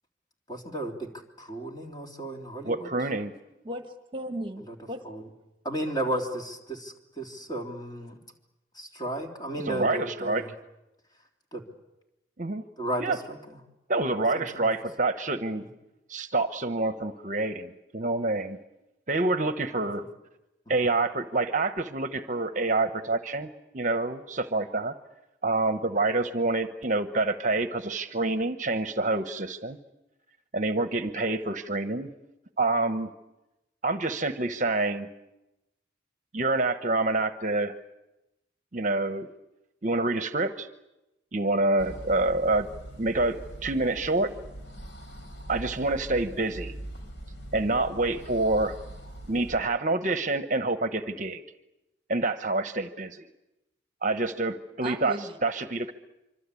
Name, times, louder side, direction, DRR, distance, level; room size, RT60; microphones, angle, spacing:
voice 1, 0.5-1.1 1.4-2.9 5.0-5.2 5.6-8.2 8.8-10.5 11.5-11.6 12.8-13.6 14.3-14.7, right 1 dB, 20° left, 1 dB, 3.5 m, -34 dB
voice 2, 2.6-3.3 9.6-10.4 12.4-12.6 13.0-13.2 13.9-15.6 16.1-18.6 19.1-20.0 20.7-24.9 25.4-29.8 30.5-32.1 32.6-33.1 33.8-35.1 36.3-37.7 38.7-39.3 39.8-40.7 41.3-42.7 43.0-44.3 45.5-46.7 47.5-48.8 49.3-51.4 52.1-53.2 54.0-55.9, right 2 dB, 40° right, 9 dB, 1.0 m, -27 dB
voice 3, 3.6-5.0 54.8-55.4, right 1 dB, 25° right, 6 dB, 1.5 m, -36 dB
sound 1, 41.8-49.6, right 1 dB, 90° left, 3.8 m, -42 dB
25.5 x 25.5 x 8.4 m, 0.96 s
head